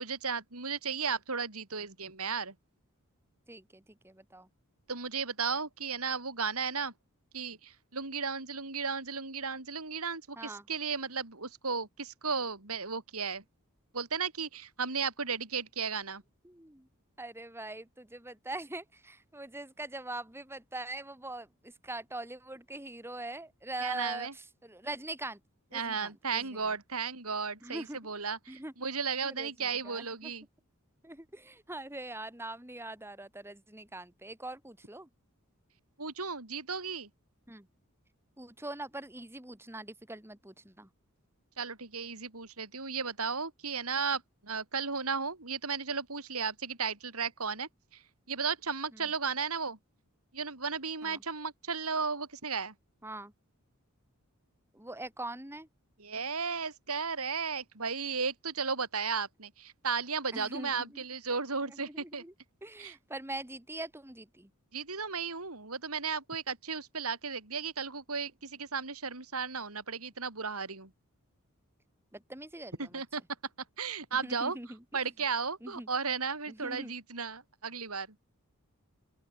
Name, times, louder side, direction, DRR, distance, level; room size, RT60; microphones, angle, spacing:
voice 1, 0.0-2.5 4.9-6.9 7.3-13.4 13.9-16.2 23.8-24.3 25.7-30.4 36.0-37.1 41.6-48.0 48.3-49.8 50.3-52.7 56.0-62.2 62.8-62.9 64.7-70.9 72.8-73.2 73.8-74.6 74.9-78.1, right 5 dB, 85° right, 4.5 m, -35 dB
voice 2, 3.5-4.5 10.4-10.7 16.4-16.9 17.2-25.4 25.7-26.7 27.6-28.0 28.5-28.7 29.2-30.3 31.0-35.1 37.5-37.7 38.4-40.9 48.9-49.1 51.0-51.2 53.0-53.3 54.7-55.7 60.3-61.0 61.6-62.3 62.6-64.5 72.1-73.0 74.2-74.8 75.6-75.9 76.5-77.0, right 2 dB, 10° right, 2.7 m, -43 dB
open air
head